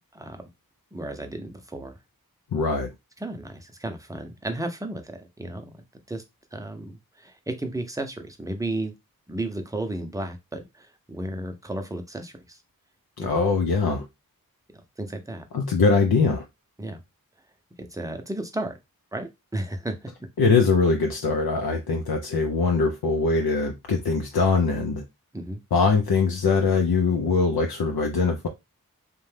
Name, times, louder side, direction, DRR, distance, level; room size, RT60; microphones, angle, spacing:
voice 1, 0.9-2.0 3.2-6.2 6.5-8.9 9.3-12.6 13.2-13.3 14.7-15.5 16.8-17.0 17.8-18.7 19.1-20.1 25.3-25.6, right 1 dB, 10° right, 0.6 m, -33 dB
voice 2, 2.5-2.9 13.2-14.0 15.5-16.4 20.4-25.0 25.7-28.5, left 4 dB, 75° left, 0.5 m, -22 dB
2.6 x 2.2 x 3.2 m
wide cardioid pair, 45°, 37 cm